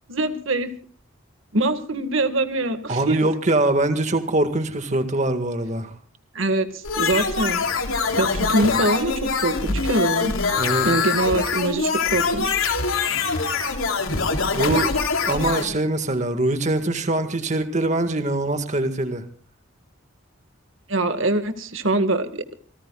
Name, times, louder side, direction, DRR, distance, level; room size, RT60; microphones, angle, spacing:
voice 1, 0.1-0.7 1.5-3.2 6.3-7.6 8.1-10.3 10.8-12.5 20.9-22.5, right 2 dB, 75° right, 8 dB, 1.9 m, -23 dB
voice 2, 2.9-5.9 10.6-10.9 14.5-14.9 15.3-19.2, right 2 dB, 35° right, 8 dB, 1.9 m, -23 dB
sound 1, 6.8-15.7, left 4 dB, 90° left, 3.3 m, -23 dB
28.5 x 18.5 x 2.4 m, 0.42 s
head